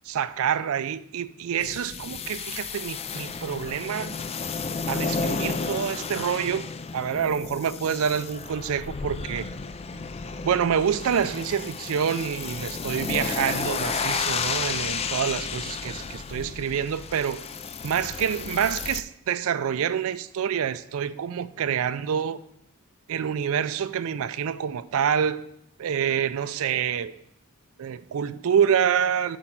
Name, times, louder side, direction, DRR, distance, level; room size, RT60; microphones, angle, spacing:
voice 1, 0.1-4.2 4.9-6.6 6.9-9.5 10.4-17.4 17.8-22.4 23.1-25.4 25.8-27.1 27.8-29.4, right 8 dB, 65° right, 13 dB, 0.4 m, -27 dB
sound 1, 1.6-19.0, left 5 dB, 25° left, 0.3 m, -32 dB
7.9 x 4.4 x 5.9 m, 0.73 s
head